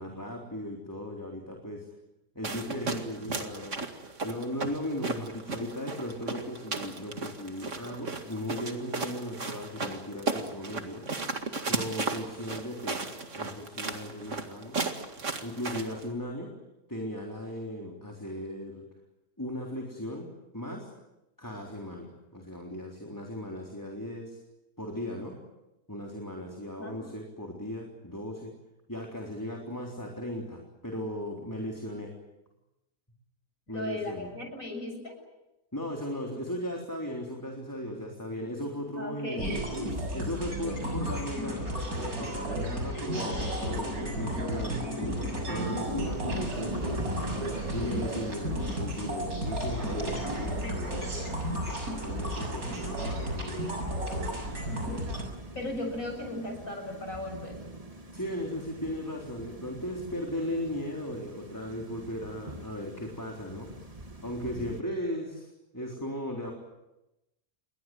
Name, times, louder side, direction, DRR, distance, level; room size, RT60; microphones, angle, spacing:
voice 1, 0.0-1.9 2.4-3.8 4.2-11.1 11.6-14.8 15.4-16.5 16.9-18.9 19.4-20.3 20.5-20.9 21.4-24.4 24.8-25.3 25.9-28.5 28.9-32.1 33.7-34.4 35.7-47.1 47.7-51.3 52.0-53.7 58.1-63.7 64.2-66.5, left 1 dB, 10° left, 0 dB, 3.8 m, -37 dB
sound 1, 2.4-16.1, right 3 dB, 55° right, 2.4 m, -35 dB
voice 2, 33.7-35.2 39.0-39.8 52.3-52.6 55.5-57.6, left 1 dB, 65° left, 3 dB, 7.7 m, -37 dB
sound 2, 39.4-55.2, equal, 80° right, 7.4 m, -33 dB
Thunder / Rain, 45.6-64.8, right 2 dB, 25° right, 2.0 m, -43 dB
29.0 x 22.5 x 7.8 m, 0.95 s
omnidirectional pair, 1.5 m